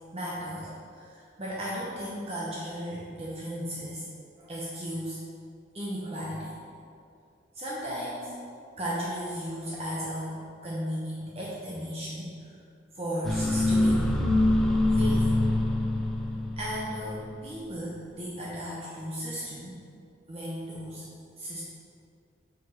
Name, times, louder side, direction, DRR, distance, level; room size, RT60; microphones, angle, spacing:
voice 1, 0.1-4.1 4.4-5.3 5.7-6.6 7.5-8.3 8.8-12.5 12.9-14.1 14.9-15.5 16.6-19.8 20.3-21.6, equal, 35° right, -5 dB, 0.7 m, -35 dB
sound 1, 13.2-17.2, left 1 dB, ahead, 0.4 m, -24 dB
4.8 x 4.2 x 4.7 m, 2.4 s
head